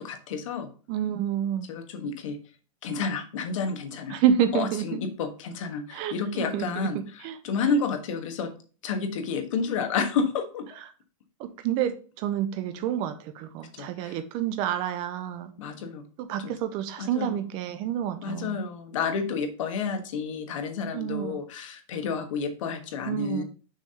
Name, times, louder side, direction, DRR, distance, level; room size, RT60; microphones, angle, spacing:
voice 1, 0.0-0.7 1.7-2.4 2.8-4.2 4.5-8.5 8.8-10.8 13.8-14.2 15.6-16.0 16.4-16.5 17.0-17.5 18.2-23.4, left 5 dB, 65° left, 1.5 m, -30 dB
voice 2, 0.9-1.7 4.1-5.0 5.9-6.9 7.2-7.3 11.6-15.5 16.2-18.6 20.9-21.4 23.1-23.4, right 9 dB, 30° right, 0.5 m, -28 dB
6.2 x 3.5 x 5.6 m
supercardioid pair, 165°, 18 cm